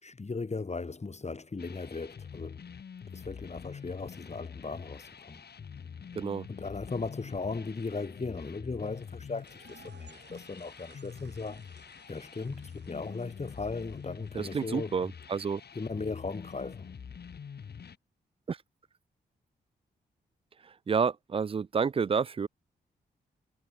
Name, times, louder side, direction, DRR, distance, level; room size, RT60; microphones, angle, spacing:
voice 1, 0.0-2.6 3.1-5.4 6.5-11.6 12.1-14.9 15.7-17.0, left 4 dB, 35° left, 2.7 m, -37 dB
sound 1, 1.6-18.0, left 7 dB, 60° left, 2.4 m, -46 dB
voice 2, 6.2-6.5 14.3-15.6 18.5-18.6 20.6-22.5, right 6 dB, 30° right, 0.4 m, -30 dB
sound 2, 9.3-15.3, right 7 dB, 65° right, 3.8 m, -61 dB
supercardioid pair, 45°, 19 cm